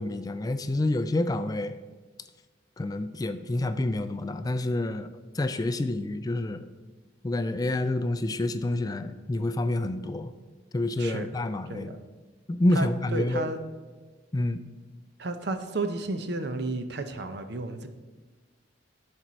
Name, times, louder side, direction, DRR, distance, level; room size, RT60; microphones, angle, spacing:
voice 1, 0.0-1.8 2.8-5.1 5.3-6.7 7.2-10.3 10.7-12.0 12.5-13.5 14.3-14.6, left 1 dB, 20° left, 11 dB, 0.3 m, -28 dB
voice 2, 11.0-11.3 11.7-12.0 12.7-13.6 15.2-17.9, right 2 dB, 60° right, 8 dB, 0.7 m, -32 dB
10.5 x 4.5 x 6.2 m, 1.3 s
head